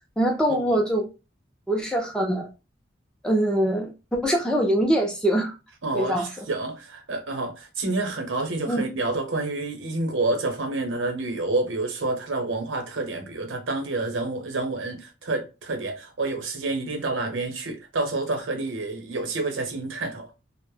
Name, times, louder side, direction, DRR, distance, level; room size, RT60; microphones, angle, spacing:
voice 1, 0.2-1.1 1.7-2.5 3.2-5.5 5.9-6.4 8.7-8.8, right 1 dB, 5° left, 0.3 m, -23 dB
voice 2, 5.8-20.3, right 2 dB, 85° right, 0.7 m, -28 dB
2.1 x 2.0 x 3.1 m
head